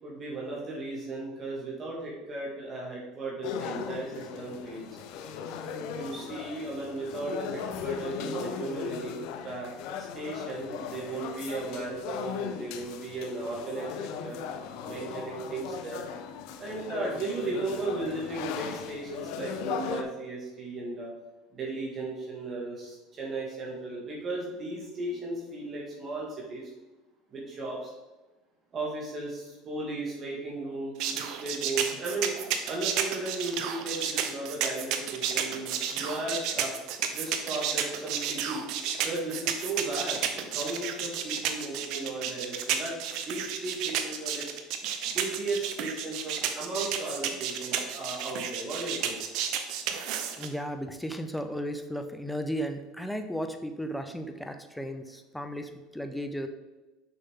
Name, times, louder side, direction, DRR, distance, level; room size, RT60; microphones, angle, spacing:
voice 1, 0.0-5.0 5.9-9.1 9.4-9.7 10.0-14.4 14.8-16.0 16.6-21.1 21.5-26.7 27.3-27.9 28.7-32.3 32.6-36.7 37.1-38.6 39.0-44.5 45.0-49.2, right 2 dB, 35° right, -4 dB, 2.2 m, -36 dB
sound 1, 3.4-20.0, left 7 dB, 70° left, 0.6 m, -38 dB
sound 2, 31.0-50.5, right 9 dB, 65° right, 0.8 m, -31 dB
voice 2, 50.4-56.5, equal, 5° left, 7 dB, 0.7 m, -35 dB
6.9 x 5.5 x 3.8 m, 1.1 s
supercardioid pair, 110°, 0 cm